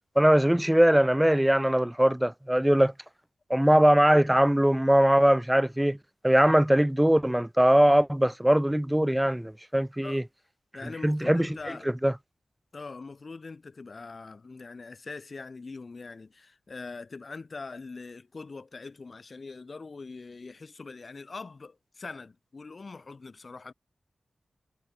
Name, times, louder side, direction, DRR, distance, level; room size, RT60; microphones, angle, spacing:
voice 1, 0.2-2.9 3.5-6.0 6.2-10.2 11.0-11.6 12.0-12.1, right 1 dB, 10° right, 0.6 m, -21 dB
voice 2, 10.7-11.9 12.7-23.7, left 4 dB, 50° left, 6.2 m, -42 dB
cardioid pair, 55°, 0 cm